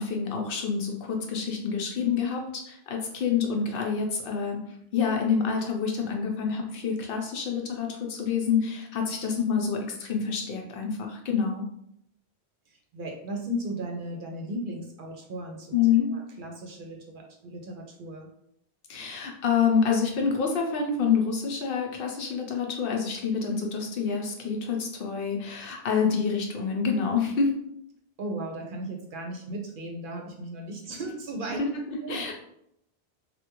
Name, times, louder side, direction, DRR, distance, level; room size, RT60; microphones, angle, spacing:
voice 1, 0.0-4.6 4.9-11.6 15.7-16.1 18.9-27.5 31.6-32.3, left 6 dB, 65° left, 1 dB, 0.7 m, -27 dB
voice 2, 12.7-18.3 28.2-31.6 32.0-32.2, right 1 dB, 60° right, 1 dB, 0.7 m, -36 dB
3.4 x 2.2 x 2.9 m, 0.75 s
omnidirectional pair, 1.1 m